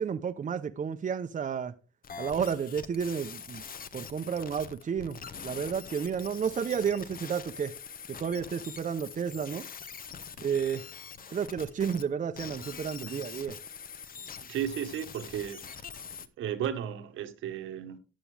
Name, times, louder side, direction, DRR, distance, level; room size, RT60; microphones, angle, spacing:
voice 1, 0.0-1.7 2.2-3.6 3.9-7.7 8.1-9.7 10.4-10.9 11.3-13.6, right 7 dB, 40° right, 0.8 m, -31 dB
sound 1, 2.0-12.1 12.4-16.3, left 7 dB, 45° left, 1.0 m, -44 dB
voice 2, 14.5-16.0 16.4-18.0, right 10 dB, 80° right, 1.4 m, -35 dB
12.5 x 8.8 x 3.4 m
cardioid pair, 90°, 20 cm